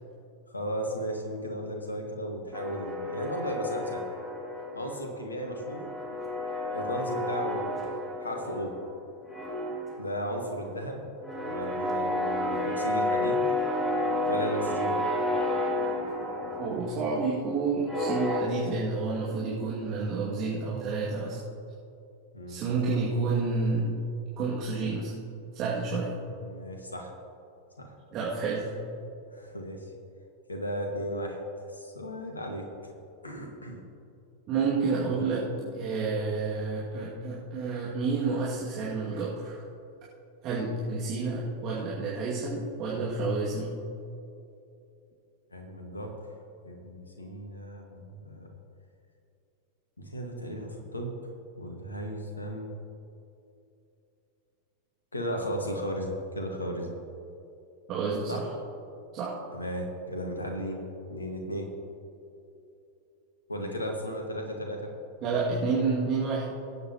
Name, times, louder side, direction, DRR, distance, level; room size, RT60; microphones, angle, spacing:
voice 1, 0.5-4.0 4.7-5.8 6.7-7.8 8.2-8.7 10.0-11.0 11.4-13.4 14.3-15.0 22.3-22.6 26.3-27.1 27.8-27.9 29.3-29.9 30.5-31.4 31.7-32.7 33.2-33.8 45.5-46.1 46.6-48.5 50.0-51.1 51.6-52.7 55.1-56.9 58.3-58.4 59.5-60.8 61.1-61.7 63.5-64.9, equal, 80° left, 2 dB, 1.7 m, -35 dB
sound 1, 2.5-5.1 5.3-9.0 9.3-18.4, left 1 dB, 5° left, 2.8 m, -31 dB
voice 2, 16.6-21.4 22.5-23.9 24.4-25.1 25.5-26.1 28.1-28.7 34.5-35.5 35.7-39.6 40.4-43.7 57.9-58.5 59.1-59.4 65.2-66.5, right 4 dB, 35° right, -7 dB, 2.3 m, -29 dB
23.5 x 8.3 x 3.0 m, 2.7 s
figure-of-eight pair, 90°, 0 cm